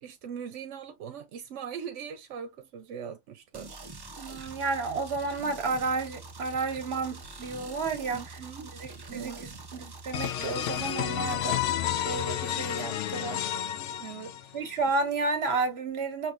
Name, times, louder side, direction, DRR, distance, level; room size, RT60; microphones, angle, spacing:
voice 1, 0.0-3.9 8.1-8.7 9.1-9.5 14.0-14.6, right 7 dB, 85° right, 1.0 m, -41 dB
sound 1, 3.5-10.9, right 3 dB, 30° right, 0.5 m, -45 dB
voice 2, 4.2-8.2 8.8-11.6 12.0-13.5 14.5-16.3, right 3 dB, 60° right, 1.3 m, -31 dB
sound 2, 10.1-14.7, left 11 dB, 85° left, 0.9 m, -31 dB
5.8 x 2.8 x 2.4 m
omnidirectional pair, 1.2 m